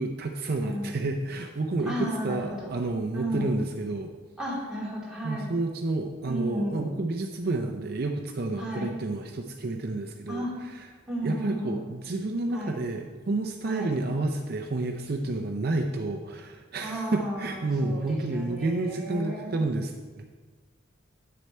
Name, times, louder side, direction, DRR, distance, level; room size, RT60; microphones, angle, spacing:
voice 1, 0.0-4.1 5.2-10.9 11.2-19.9 20.2-20.3, right 2 dB, 50° right, 4 dB, 0.5 m, -30 dB
voice 2, 0.6-1.0 1.9-2.7 3.1-3.5 4.4-5.5 6.2-7.0 8.6-8.9 10.3-10.5 11.1-11.8 12.5-12.8 13.6-14.0 16.8-19.6, equal, 5° right, -7 dB, 2.5 m, -33 dB
8.6 x 6.6 x 4.3 m, 1.4 s
head